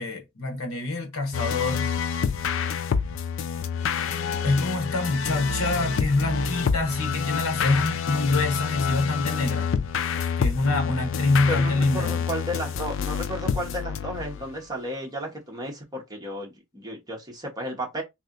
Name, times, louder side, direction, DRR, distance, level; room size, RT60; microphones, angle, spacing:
voice 1, 0.0-1.9 4.4-9.7 10.4-12.2, left 2 dB, 75° left, 1.0 m, -25 dB
Debe Givu, 1.3-14.6, left 6 dB, 60° left, 0.3 m, -28 dB
voice 2, 11.5-18.0, equal, 20° right, 1.0 m, -33 dB
3.2 x 2.8 x 2.5 m
head